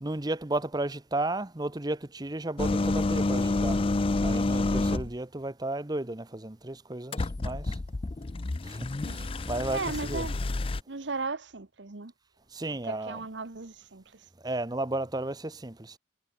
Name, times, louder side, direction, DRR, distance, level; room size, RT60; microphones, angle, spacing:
voice 1, 0.0-3.8 4.2-7.6 9.5-10.2 12.6-13.2 14.4-15.7, right 2 dB, 20° right, 0.9 m, -33 dB
sound 1, 2.6-5.1 7.1-10.8, left 2 dB, 30° left, 0.5 m, -28 dB
voice 2, 4.8-5.1 8.9-10.4 10.9-12.1 12.7-14.3, right 4 dB, 80° right, 1.2 m, -37 dB
head